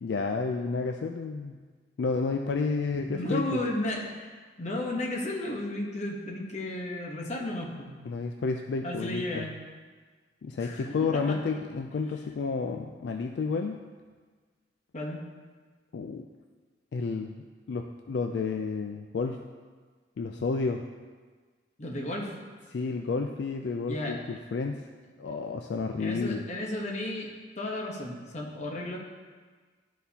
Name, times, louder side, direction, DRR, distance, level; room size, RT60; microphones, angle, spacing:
voice 1, 0.0-1.6 2.0-3.6 8.0-9.5 10.4-13.8 15.9-16.3 16.9-17.4 17.7-19.4 20.2-20.8 22.7-24.8 25.2-26.5, left 4 dB, 70° left, 4 dB, 0.3 m, -31 dB
voice 2, 2.9-4.3 4.6-7.9 8.8-9.5 10.6-10.9 11.1-11.4 14.9-15.2 21.8-22.3 23.9-24.2 26.0-27.3 27.6-29.0, left 1 dB, 40° left, -1 dB, 1.0 m, -33 dB
12.0 x 4.2 x 2.8 m, 1.5 s
head